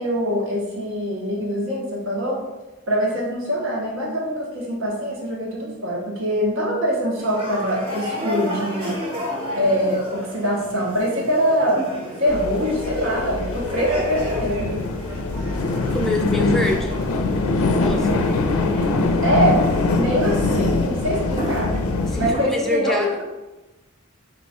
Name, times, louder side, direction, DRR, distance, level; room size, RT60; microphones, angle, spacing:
voice 1, 0.0-2.4 2.9-9.0 9.5-11.9 12.2-14.7 19.2-21.8 22.2-23.2, equal, 65° right, -3 dB, 0.9 m, -23 dB
sound 1, 7.2-22.5, equal, 25° right, 0.8 m, -32 dB
sound 2, 12.3-22.4, left 3 dB, 90° left, 0.4 m, -23 dB
voice 2, 15.9-16.9 17.6-18.3 22.0-23.1, left 1 dB, ahead, 0 dB, 0.3 m, -26 dB
4.4 x 2.3 x 4.1 m, 1.1 s
head